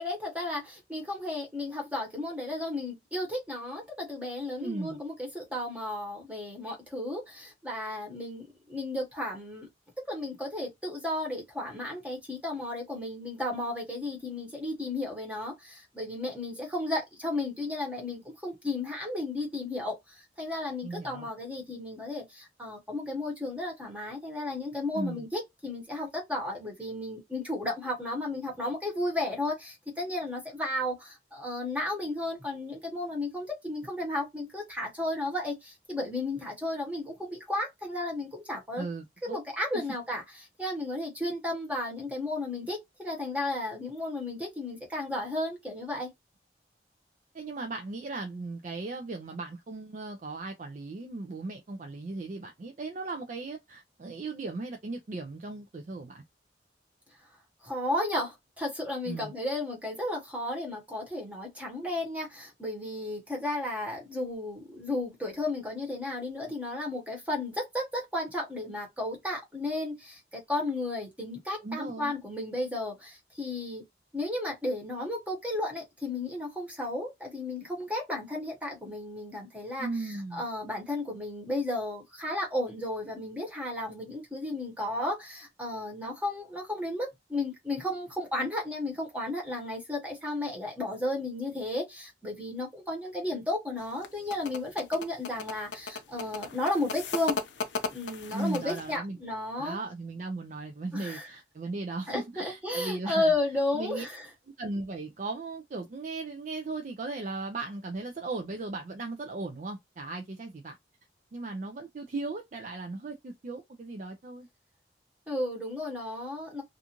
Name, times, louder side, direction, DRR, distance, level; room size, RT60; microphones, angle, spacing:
voice 1, 0.0-9.7 10.1-38.9 39.3-40.2 40.6-46.1 57.6-73.8 74.1-97.4 97.9-99.8 100.9-101.3 102.1-104.2 115.3-116.6, left 1 dB, 10° right, 0.9 m, -33 dB
voice 2, 4.6-5.0 20.8-21.3 24.9-25.2 38.8-39.4 39.7-39.8 47.3-56.2 59.1-59.3 71.6-72.1 79.8-80.4 98.3-99.2 99.6-103.3 103.7-104.0 104.6-110.8 111.3-114.5, right 3 dB, 45° right, 0.4 m, -37 dB
sound 1, 93.8-99.0, left 4 dB, 90° left, 0.5 m, -36 dB
2.5 x 2.4 x 2.8 m
head